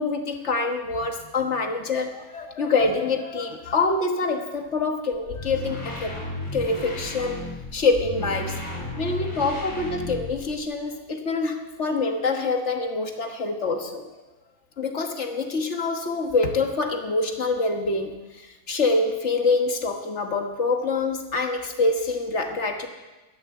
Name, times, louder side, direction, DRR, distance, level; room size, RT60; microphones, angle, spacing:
voice 1, 0.0-6.1 6.5-7.4 7.7-8.6 9.0-14.0 14.8-18.1 18.7-22.9, left 3 dB, 55° left, 4 dB, 1.6 m, -25 dB
sound 1, 5.1-10.6, left 1 dB, 70° left, 3.1 m, -34 dB
12.0 x 10.5 x 8.0 m, 1.1 s
omnidirectional pair, 1.5 m